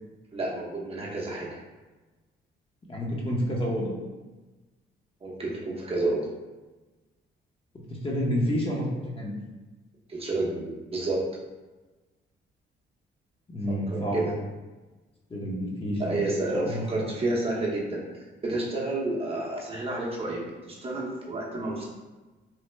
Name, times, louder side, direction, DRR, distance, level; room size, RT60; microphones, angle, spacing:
voice 1, 0.3-1.5 5.2-6.3 10.1-11.2 13.9-14.3 16.0-21.8, right 2 dB, 30° right, -4 dB, 0.7 m, -30 dB
voice 2, 2.9-3.9 7.9-9.4 13.5-14.3 15.3-16.2 16.6-17.1, equal, 30° left, -2 dB, 0.7 m, -29 dB
3.1 x 2.1 x 3.2 m, 1.2 s
cardioid pair, 90°, 20 cm